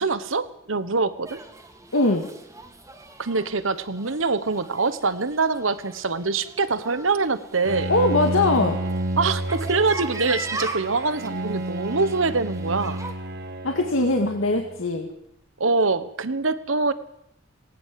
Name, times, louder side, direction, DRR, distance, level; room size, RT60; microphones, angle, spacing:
voice 1, 0.0-1.4 3.2-7.9 9.2-13.0 15.6-16.9, right 4 dB, 75° right, 13 dB, 1.3 m, -24 dB
sound 1, 1.3-13.1, right 2 dB, 15° right, 2.6 m, -39 dB
voice 2, 1.9-2.3 7.9-8.8 13.6-15.1, left 2 dB, 80° left, 3 dB, 2.0 m, -21 dB
Bowed string instrument, 7.6-14.8, right 1 dB, 55° right, 1.4 m, -30 dB
18.5 x 18.0 x 7.7 m, 0.77 s
head